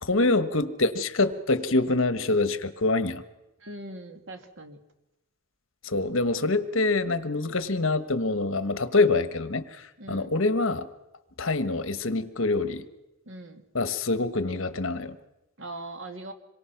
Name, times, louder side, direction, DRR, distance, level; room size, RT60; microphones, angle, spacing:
voice 1, 0.0-3.2 5.8-10.9 11.4-12.8 13.7-15.2, left 3 dB, 60° left, 12 dB, 1.3 m, -25 dB
voice 2, 3.6-4.8 10.0-10.3 13.3-13.6 15.6-16.3, right 2 dB, 60° right, 6 dB, 2.4 m, -40 dB
26.5 x 23.5 x 5.9 m, 0.96 s
head